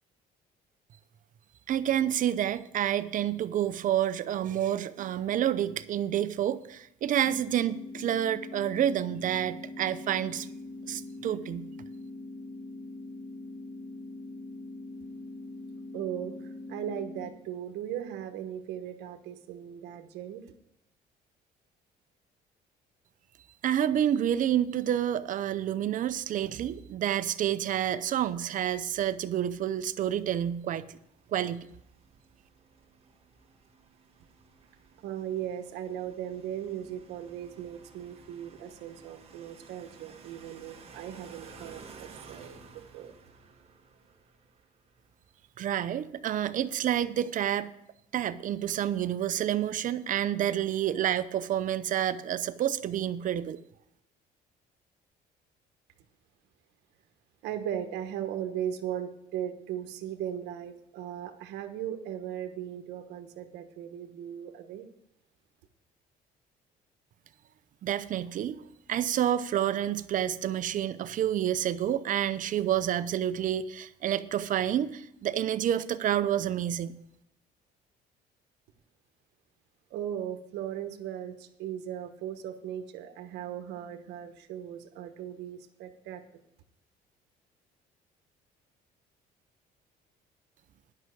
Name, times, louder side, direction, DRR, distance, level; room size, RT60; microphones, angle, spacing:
voice 1, 1.7-10.5 10.9-11.7 23.6-31.0 31.3-31.7 45.6-47.7 48.1-53.6 67.8-68.6 68.9-77.0, right 10 dB, 50° right, 13 dB, 0.6 m, -29 dB
sound 1, 7.2-17.2, left 2 dB, 45° left, 1.7 m, -42 dB
voice 2, 15.9-20.4 35.0-43.2 57.4-64.8 79.9-86.2, right 10 dB, 85° right, 7 dB, 1.1 m, -38 dB
sound 2, 29.4-45.6, right 5 dB, 35° right, 1.8 m, -54 dB
10.5 x 5.8 x 8.0 m, 0.80 s
cardioid pair, 110°, 17 cm